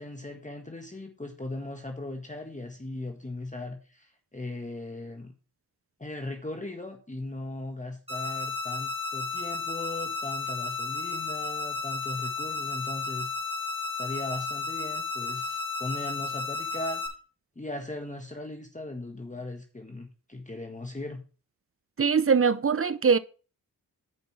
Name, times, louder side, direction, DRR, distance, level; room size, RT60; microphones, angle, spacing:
voice 1, 0.0-5.3 6.0-13.3 14.0-17.0 17.5-21.2, left 2 dB, 20° left, 1.6 m, -38 dB
sound 1, 8.1-17.1, left 4 dB, 15° right, 3.4 m, -33 dB
voice 2, 22.0-23.2, right 6 dB, 35° right, 0.7 m, -22 dB
9.6 x 5.3 x 4.7 m
cardioid pair, 45°, 40 cm